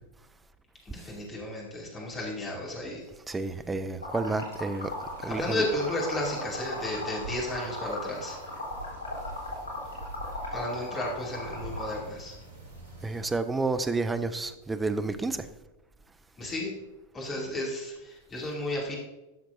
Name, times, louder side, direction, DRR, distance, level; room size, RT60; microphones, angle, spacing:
voice 1, 0.8-3.1 5.2-8.4 10.5-12.4 16.4-16.8 17.1-18.9, left 1 dB, 20° left, 2.6 m, -33 dB
voice 2, 3.3-4.9 5.2-5.6 13.0-15.5, right 3 dB, 10° right, 0.5 m, -30 dB
Liquid, 4.0-12.0, left 2 dB, 90° right, 3.2 m, -37 dB
sound 1, 4.8-13.2, right 1 dB, 65° right, 1.8 m, -45 dB
13.0 x 5.9 x 2.7 m
figure-of-eight pair, 90°, 0 cm